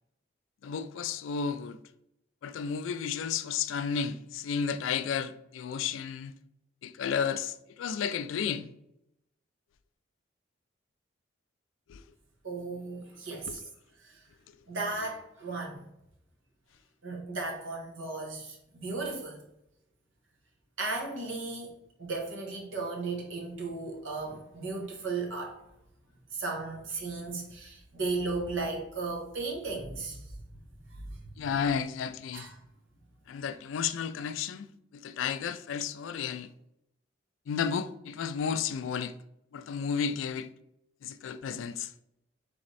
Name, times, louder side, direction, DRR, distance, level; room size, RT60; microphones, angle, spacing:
voice 1, 0.6-1.8 2.4-6.3 6.8-8.7 11.9-12.0 13.3-13.7 14.5-14.6 31.4-32.4 33.3-34.7 34.9-36.5 37.5-39.1 39.5-40.5 41.0-41.9, left 7 dB, 85° left, 0.3 m, -32 dB
voice 2, 12.4-13.6 14.0-14.2 14.7-15.8 17.0-19.4 20.8-21.7 22.0-25.6 26.3-30.3 30.9-31.1 32.3-32.6, right 3 dB, 80° right, 1.1 m, -35 dB
3.4 x 3.1 x 4.0 m
head